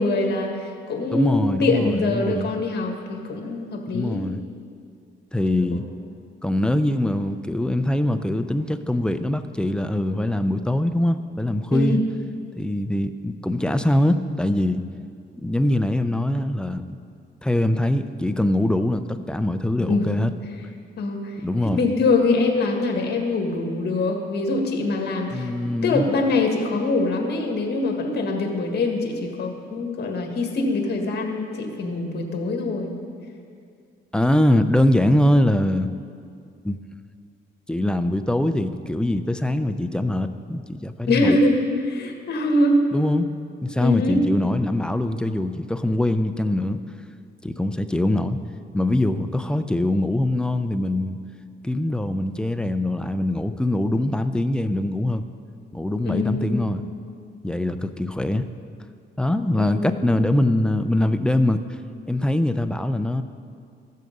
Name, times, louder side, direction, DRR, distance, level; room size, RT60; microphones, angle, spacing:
voice 1, 0.0-4.2 5.7-5.8 11.7-12.0 19.9-20.1 21.0-21.3 21.6-32.9 41.1-41.5 41.9-42.8 43.8-44.2 56.0-56.7 59.6-59.9, left 2 dB, 55° left, 2 dB, 1.7 m, -23 dB
voice 2, 1.1-2.5 3.9-4.4 5.3-5.8 6.4-12.0 12.6-14.8 15.3-16.8 17.4-20.3 21.4-21.8 25.3-26.1 34.1-35.9 36.6-36.8 37.7-41.4 42.9-43.3 43.6-46.8 47.4-48.4 48.7-51.2 51.6-55.2 55.7-56.8 57.4-58.5 59.2-61.6 62.1-63.2, left 1 dB, 5° left, 9 dB, 0.5 m, -23 dB
14.0 x 6.6 x 5.3 m, 2.3 s
cardioid pair, 90°, 20 cm